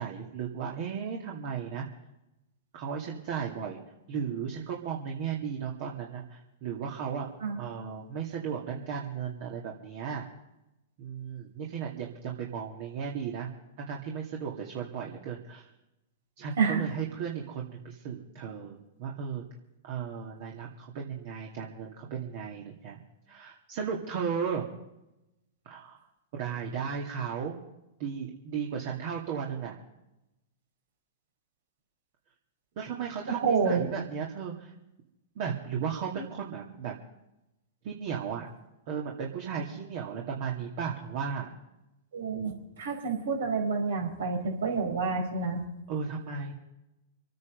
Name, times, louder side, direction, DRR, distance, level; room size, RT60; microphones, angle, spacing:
voice 1, 0.0-1.9 2.7-3.8 4.1-7.3 7.6-10.3 11.0-13.5 13.8-15.7 16.4-19.4 19.8-23.0 23.3-24.6 25.6-26.0 26.3-27.6 28.0-29.8 32.8-34.7 35.4-36.9 37.8-38.5 38.9-41.5 45.9-46.5, right 7 dB, 55° right, -1 dB, 2.5 m, -35 dB
voice 2, 33.3-33.8 42.1-45.6, right 5 dB, 75° right, 2 dB, 5.0 m, -28 dB
27.0 x 9.5 x 5.3 m, 0.93 s
hypercardioid pair, 115°, 0 cm